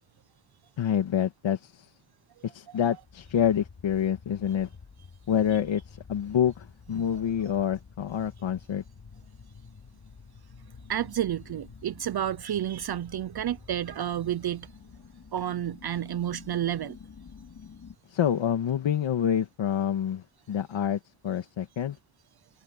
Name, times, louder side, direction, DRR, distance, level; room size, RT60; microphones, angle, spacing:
voice 1, 0.8-1.9 2.4-4.7 5.3-8.8 18.1-22.0, left 9 dB, 65° left, 2.1 m, -27 dB
sound 1, 3.0-18.0, left 5 dB, 40° left, 4.5 m, -50 dB
voice 2, 10.9-14.7 15.3-17.0, right 11 dB, 50° right, 0.8 m, -30 dB
cardioid pair, 90°, 50 cm